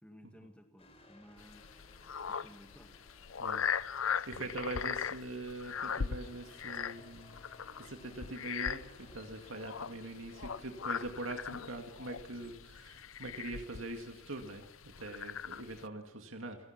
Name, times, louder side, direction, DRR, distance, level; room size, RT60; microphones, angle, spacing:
voice 1, 0.0-1.8 2.3-2.9, equal, 5° left, 5 dB, 2.0 m, -57 dB
sound 1, 0.8-13.0, left 1 dB, 30° left, 4.7 m, -61 dB
sound 2, 1.4-15.9, left 7 dB, 85° left, 0.7 m, -40 dB
voice 2, 4.3-7.4 7.8-16.6, right 2 dB, 80° right, 4 dB, 2.2 m, -43 dB
30.0 x 17.0 x 6.0 m, 0.95 s
head